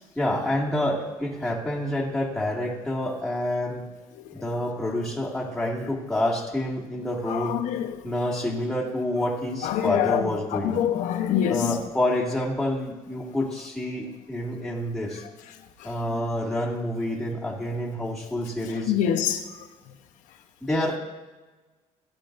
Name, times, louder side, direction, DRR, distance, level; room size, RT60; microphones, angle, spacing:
voice 1, 0.2-3.9 4.3-7.6 8.0-10.8 11.5-15.2 15.8-18.9 20.6-21.0, left 1 dB, ahead, 2.3 m, -28 dB
voice 2, 7.3-7.9 9.6-10.2 10.5-11.8 18.9-19.4, left 10 dB, 90° left, 1.0 m, -24 dB
17.5 x 11.0 x 2.6 m
cardioid pair, 105°, 13 cm